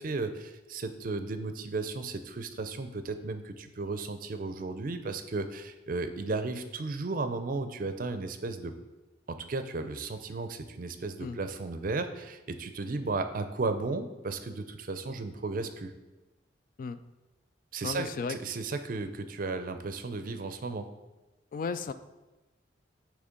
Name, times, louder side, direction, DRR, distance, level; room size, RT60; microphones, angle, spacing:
voice 1, 0.0-8.7 9.3-15.9 17.7-20.9, right 3 dB, 50° right, 9 dB, 0.5 m, -34 dB
voice 2, 17.8-18.4 21.5-21.9, left 5 dB, 50° left, 12 dB, 0.3 m, -34 dB
8.1 x 3.2 x 5.1 m, 1.1 s
head